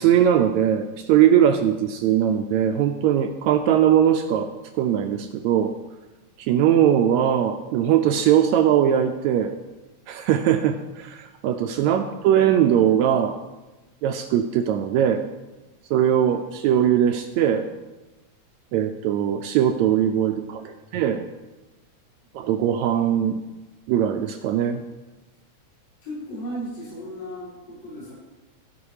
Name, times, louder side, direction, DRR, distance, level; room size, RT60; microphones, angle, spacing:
voice 1, 0.0-5.7 6.4-9.5 10.1-13.4 14.0-15.3 15.9-17.7 18.7-21.2 22.3-23.4 23.9-24.8, right 10 dB, 80° right, 6 dB, 1.7 m, -20 dB
voice 2, 20.4-21.0 26.0-28.1, equal, 55° left, -9 dB, 5.4 m, -36 dB
15.0 x 5.5 x 4.8 m, 1.1 s
omnidirectional pair, 3.5 m